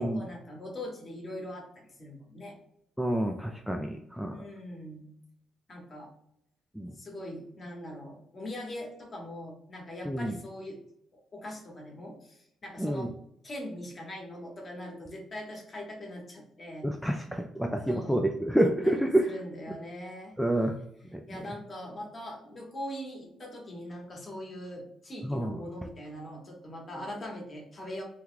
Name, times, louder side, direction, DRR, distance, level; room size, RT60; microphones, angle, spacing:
voice 1, 0.0-2.6 4.3-5.1 5.7-6.1 7.0-10.8 11.1-13.1 13.4-16.9 17.9-18.2 18.8-20.4 21.3-28.0, left 1 dB, 35° left, 0 dB, 1.2 m, -41 dB
voice 2, 3.0-4.4 6.8-6.9 10.1-10.3 12.8-13.1 16.8-19.3 20.4-20.8 21.1-21.2 25.2-25.6, right 1 dB, ahead, 3 dB, 0.3 m, -28 dB
3.0 x 2.3 x 3.6 m, 0.72 s
cardioid pair, 90°, 0 cm